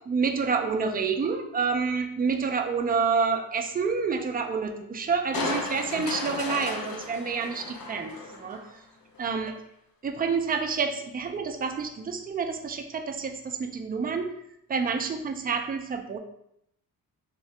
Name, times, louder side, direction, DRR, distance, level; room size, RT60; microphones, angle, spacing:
voice 1, 0.1-8.8 9.2-9.5 10.0-14.4 14.7-16.2, right 5 dB, 25° right, 5 dB, 0.4 m, -28 dB
Crushing, 5.3-8.7 9.2-9.3, left 3 dB, 70° left, 0.7 m, -34 dB
3.7 x 2.7 x 3.2 m, 0.78 s
cardioid pair, 100°, 36 cm